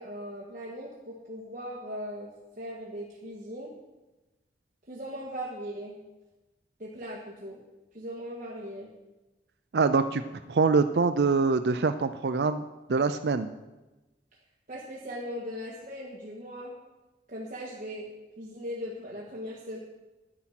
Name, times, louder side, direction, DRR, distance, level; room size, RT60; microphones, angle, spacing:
voice 1, 0.0-3.7 4.9-6.0 6.8-7.6 7.9-8.9 14.7-16.7 17.3-18.1 18.4-19.8, equal, 45° right, -4 dB, 1.7 m, -39 dB
voice 2, 9.7-10.2 10.5-12.6 12.9-13.5, right 4 dB, 75° right, 10 dB, 0.5 m, -24 dB
10.0 x 9.9 x 5.9 m, 1.1 s
head